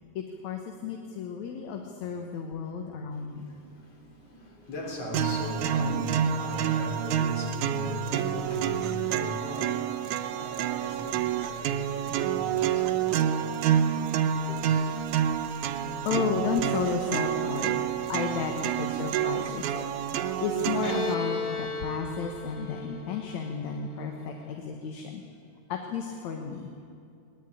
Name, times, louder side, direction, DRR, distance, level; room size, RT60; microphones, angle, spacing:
voice 1, 0.1-3.5 16.0-17.8 18.1-19.9 20.4-25.2 25.7-26.7, left 6 dB, 70° left, 3 dB, 2.6 m, -33 dB
voice 2, 3.0-15.3 16.7-16.8 18.0-18.1, left 1 dB, 55° left, 0 dB, 4.9 m, -39 dB
sound 1, 5.1-21.1, right 9 dB, 90° right, 2.3 m, -28 dB
Bowed string instrument, 20.8-24.4, left 4 dB, 25° left, 1.3 m, -35 dB
21.5 x 20.0 x 9.2 m, 2.5 s
omnidirectional pair, 3.4 m